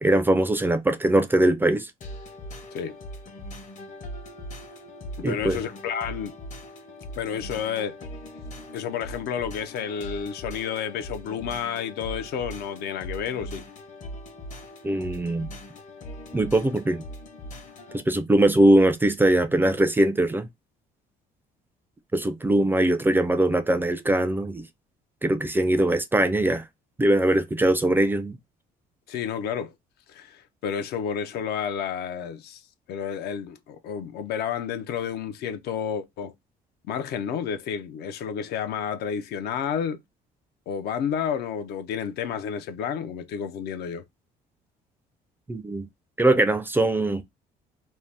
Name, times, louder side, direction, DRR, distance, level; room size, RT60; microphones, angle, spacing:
voice 1, 0.0-1.9 5.2-5.6 14.8-15.5 16.3-17.0 17.9-20.5 22.1-24.6 25.2-26.6 27.0-28.4 45.5-45.9 46.2-47.2, right 1 dB, 10° right, 0.3 m, -21 dB
sound 1, 2.0-18.0, equal, 45° left, 0.8 m, -40 dB
voice 2, 5.2-6.3 7.2-8.0 8.7-13.6 29.1-29.7 30.1-32.6 32.9-36.3 36.9-40.0 40.7-44.0, left 7 dB, 70° left, 0.5 m, -30 dB
2.7 x 2.0 x 3.2 m
cardioid pair, 110°, 17 cm